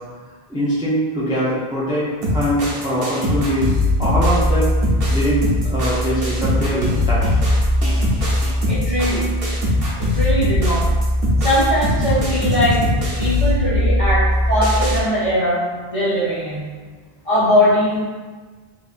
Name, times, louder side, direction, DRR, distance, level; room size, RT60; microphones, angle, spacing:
voice 1, 0.5-3.7 4.0-4.7 5.1-7.4, equal, 5° right, -9 dB, 0.4 m, -22 dB
sound 1, 2.2-15.0, left 1 dB, 70° right, 1.1 m, -19 dB
voice 2, 8.7-9.3 10.0-10.9 11.4-12.8 13.2-15.6 15.9-16.6 17.2-18.0, equal, 35° left, -9 dB, 1.1 m, -20 dB
3.8 x 2.6 x 2.4 m, 1.4 s
omnidirectional pair, 1.0 m